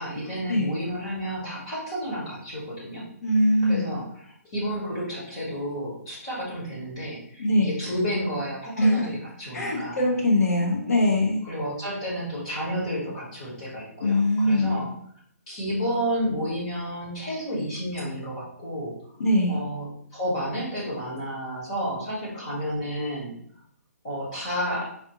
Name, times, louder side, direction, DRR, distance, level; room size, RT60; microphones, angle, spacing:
voice 1, 0.0-3.0 3.6-10.1 11.4-14.9 15.5-18.9 19.5-23.3 24.0-24.9, equal, 20° left, -8 dB, 1.4 m, -31 dB
voice 2, 3.2-3.9 7.4-7.7 8.8-9.0 9.5-11.4 14.0-14.8 19.2-19.6, left 1 dB, 70° left, -1 dB, 1.3 m, -22 dB
4.2 x 2.6 x 3.0 m, 0.65 s
hypercardioid pair, 175°, 9 cm